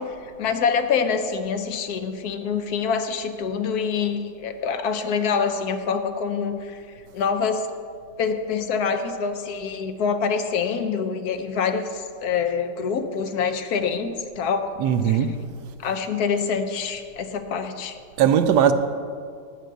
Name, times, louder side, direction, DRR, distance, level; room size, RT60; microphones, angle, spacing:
voice 1, 0.0-6.8 7.1-7.7 8.2-14.7 15.0-15.3 15.8-18.0, left 6 dB, 70° left, 1.2 m, -26 dB
voice 2, 14.8-15.3 18.2-18.7, right 9 dB, 75° right, 1.2 m, -18 dB
11.0 x 5.0 x 7.8 m
omnidirectional pair, 1.9 m